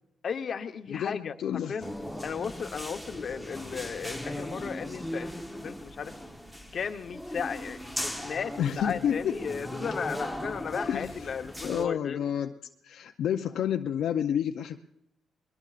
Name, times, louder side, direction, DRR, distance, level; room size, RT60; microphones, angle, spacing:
voice 1, 0.2-1.9 2.2-6.1 6.7-12.3, left 6 dB, 50° left, 7 dB, 0.9 m, -35 dB
voice 2, 0.9-1.8 8.6-9.4 10.8-11.3 11.6-12.6 12.8-14.8, left 9 dB, 70° left, 5 dB, 0.5 m, -30 dB
sound 1, 1.8-11.8, equal, ahead, 1.0 m, -38 dB
21.5 x 21.0 x 2.5 m, 0.81 s
cardioid pair, 90°, 0 cm